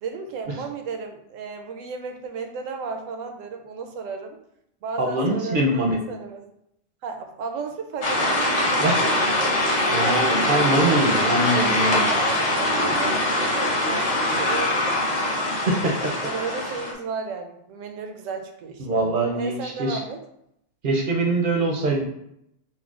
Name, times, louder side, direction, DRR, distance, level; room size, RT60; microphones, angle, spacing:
voice 1, 0.0-4.4 4.8-5.8 6.1-6.4 7.0-9.8 10.2-11.7 12.1-15.0 16.2-20.2, right 5 dB, 85° right, 4 dB, 1.0 m, -34 dB
voice 2, 5.0-6.0 8.8-9.0 9.9-12.1 15.6-15.9 18.8-20.0 20.8-22.0, right 2 dB, 55° right, 1 dB, 0.6 m, -23 dB
sound 1, 8.0-16.9, left 1 dB, 40° left, 0.6 m, -23 dB
5.7 x 2.1 x 2.4 m, 0.78 s
omnidirectional pair, 1.3 m